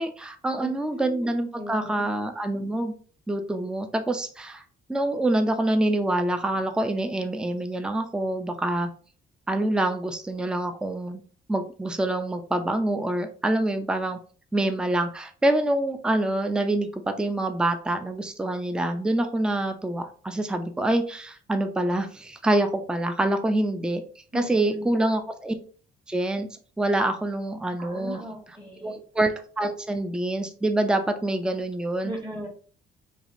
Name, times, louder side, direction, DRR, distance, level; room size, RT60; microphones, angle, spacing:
voice 1, 0.0-2.9 3.3-4.6 4.9-8.9 9.5-11.2 11.5-14.2 14.5-24.0 24.3-25.5 26.1-26.5 26.8-28.2 28.8-32.1, right 1 dB, 5° right, 7 dB, 0.4 m, -26 dB
voice 2, 0.6-2.0 24.3-24.9 27.8-28.9 32.0-32.5, equal, 20° right, -1 dB, 1.2 m, -37 dB
3.3 x 2.8 x 2.5 m, 0.42 s
cardioid pair, 90°, 20 cm